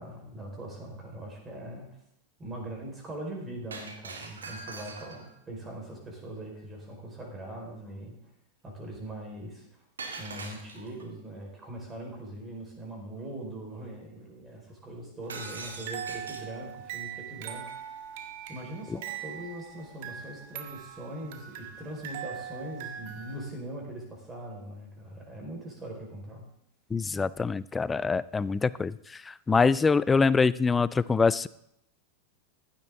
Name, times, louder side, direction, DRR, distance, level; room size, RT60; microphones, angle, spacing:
voice 1, 0.0-1.9 2.4-8.2 8.6-9.8 10.2-17.6 18.5-26.4, right 1 dB, 15° right, 0 dB, 4.6 m, -41 dB
Shatter, 3.7-5.4 10.0-11.0 15.3-16.6, right 4 dB, 70° right, 1.9 m, -42 dB
sound 1, 15.2-23.5, right 9 dB, 50° right, 1.6 m, -41 dB
voice 2, 26.9-28.9 29.3-31.5, left 4 dB, 15° left, 19 dB, 0.4 m, -24 dB
15.5 x 11.5 x 3.7 m, 0.77 s
figure-of-eight pair, 90°, 0 cm